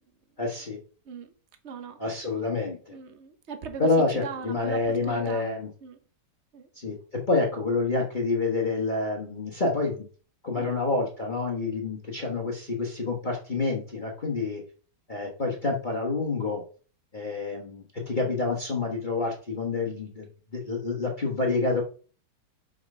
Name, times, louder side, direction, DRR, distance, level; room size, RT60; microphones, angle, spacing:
voice 1, 0.4-0.8 2.0-3.0 3.8-5.7 6.7-7.0 7.3-10.0 10.4-14.6 15.1-16.6 17.1-21.8, left 3 dB, 30° left, 1.3 m, -28 dB
voice 2, 1.6-2.0 2.9-3.9 4.2-5.5 5.8-6.0 6.5-6.7 10.6-10.8, right 6 dB, 45° right, 1.2 m, -39 dB
5.9 x 5.3 x 5.4 m
omnidirectional pair, 1.9 m